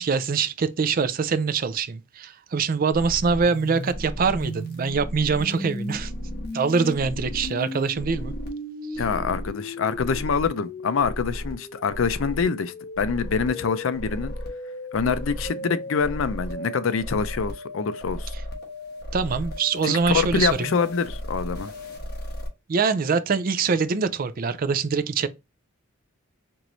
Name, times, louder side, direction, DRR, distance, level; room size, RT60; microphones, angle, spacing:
voice 1, 0.0-6.1 6.5-8.3 19.1-20.8 22.7-25.3, right 5 dB, 45° right, 0.4 m, -24 dB
sound 1, 2.9-22.5, equal, 50° left, 1.2 m, -34 dB
voice 2, 9.0-14.3 14.9-18.3 19.8-21.7, left 5 dB, 70° left, 0.5 m, -25 dB
4.5 x 3.0 x 2.6 m
head